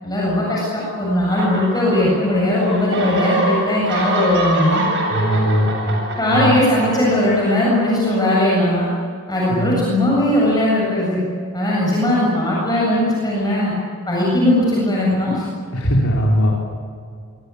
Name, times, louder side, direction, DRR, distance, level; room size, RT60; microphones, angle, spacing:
voice 1, 0.0-4.9 6.2-8.9 9.3-11.2 11.5-13.7 14.1-15.4, left 1 dB, 20° left, -5 dB, 7.9 m, -18 dB
sound 1, 1.3-2.5 2.7-7.7, right 1 dB, 55° right, 8.0 m, -24 dB
voice 2, 5.1-6.0 6.3-6.6 9.5-9.8 15.7-16.5, equal, 70° left, -4 dB, 4.6 m, -19 dB
27.0 x 24.0 x 8.7 m, 2.2 s
head